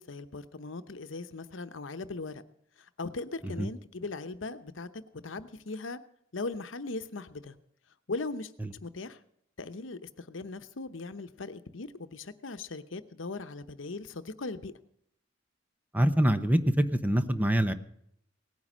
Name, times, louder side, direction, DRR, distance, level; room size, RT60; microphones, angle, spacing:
voice 1, 0.0-2.4 3.0-4.9 5.2-6.0 6.3-7.6 8.1-8.5 8.8-9.2 9.6-14.7, left 3 dB, 75° left, 11 dB, 0.9 m, -39 dB
voice 2, 15.9-17.7, right 1 dB, 10° right, 10 dB, 0.9 m, -25 dB
18.0 x 9.5 x 6.2 m, 0.71 s
head